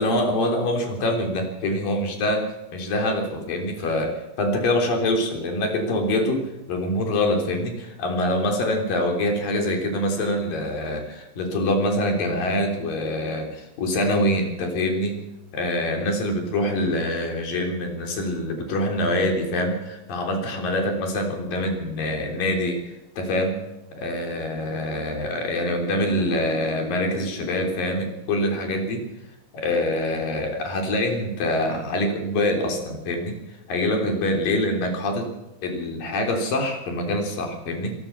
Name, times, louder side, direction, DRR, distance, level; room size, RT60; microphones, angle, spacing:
voice 1, 0.0-15.2 15.5-22.8 23.2-23.6 24.0-29.0 29.5-33.4 33.7-35.3 35.6-37.9, left 1 dB, 70° left, 3 dB, 5.1 m, -25 dB
26.0 x 17.5 x 6.0 m, 0.95 s
omnidirectional pair, 4.1 m